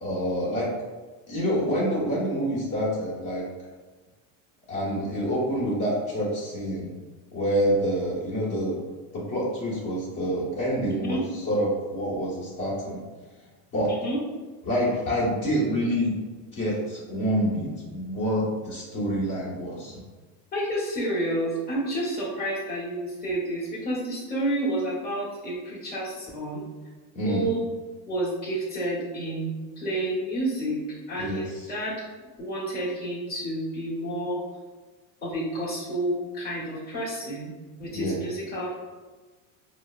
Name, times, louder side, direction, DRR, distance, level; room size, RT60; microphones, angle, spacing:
voice 1, 0.0-0.7 1.3-3.4 4.7-6.9 7.3-8.8 9.1-11.2 11.5-13.0 13.7-14.0 14.6-16.2 16.5-20.0 27.1-27.5 31.2-31.4 37.9-38.2, equal, 45° left, -6 dB, 1.3 m, -27 dB
voice 2, 11.0-11.3 13.9-14.2 20.5-26.6 27.2-27.6 28.1-30.8 31.1-32.0 32.4-34.4 35.2-37.5 37.8-38.7, right 1 dB, 20° left, -8 dB, 1.2 m, -30 dB
4.3 x 2.0 x 2.4 m, 1.3 s
supercardioid pair, 110°, 45 cm